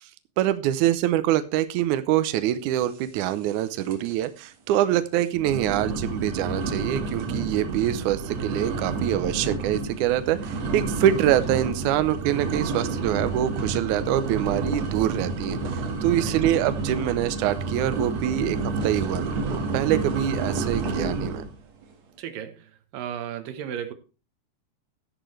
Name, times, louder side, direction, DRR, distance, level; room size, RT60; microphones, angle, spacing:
voice 1, 0.4-18.6 18.8-21.4, right 12 dB, 85° right, 1.7 m, -25 dB
sound 1, 3.2-3.6 3.8-4.2 4.7-4.8 5.3-21.5, right 3 dB, 50° right, 2.5 m, -29 dB
voice 2, 16.0-16.4 22.2-23.9, right 9 dB, 70° right, 2.8 m, -35 dB
12.5 x 10.0 x 3.3 m
omnidirectional pair, 4.4 m